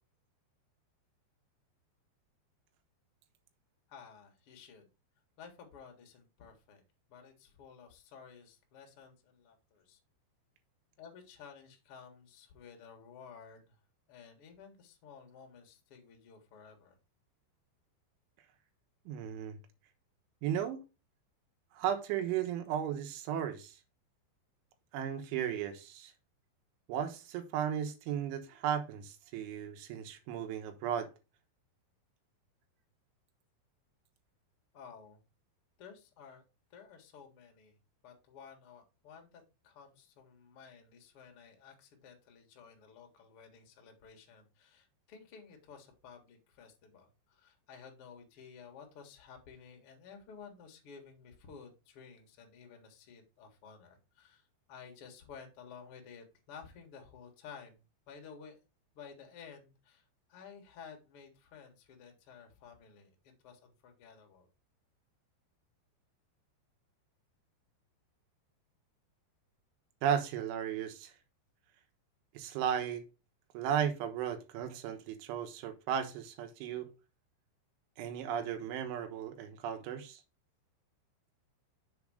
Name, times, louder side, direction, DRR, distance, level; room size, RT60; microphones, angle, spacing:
voice 1, 3.9-4.9 5.4-6.8 7.1-10.0 11.0-13.8 14.1-17.0 34.7-35.2 35.8-36.4 36.7-37.8 38.0-58.6 58.9-64.5, left 6 dB, 70° left, 1.3 m, -54 dB
voice 2, 19.1-19.6 20.4-20.8 21.8-23.8 24.9-26.1 26.9-31.1 70.0-71.1 72.4-73.0 73.6-76.9 78.0-80.2, right 9 dB, 85° right, 3.4 m, -35 dB
7.0 x 3.6 x 6.3 m
omnidirectional pair, 5.4 m